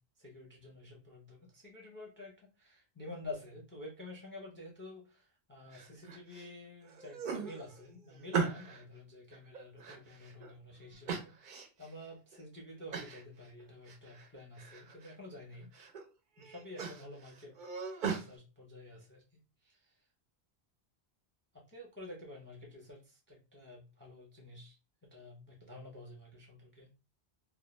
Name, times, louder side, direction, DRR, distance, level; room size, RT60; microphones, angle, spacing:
voice 1, 0.2-15.7 16.4-17.5 18.0-19.2 19.6-20.0 21.5-24.7 25.1-26.9, left 2 dB, 15° left, -1 dB, 0.5 m, -50 dB
sound 1, 5.7-6.5 6.8-8.8 9.3-10.5 11.1-11.9 12.3-12.4 12.9-13.2 13.6-14.3 14.6-15.1 15.5-16.0 16.4-18.3, right 5 dB, 55° right, 0.6 m, -39 dB
2.3 x 2.1 x 3.0 m, 0.31 s
omnidirectional pair, 1.1 m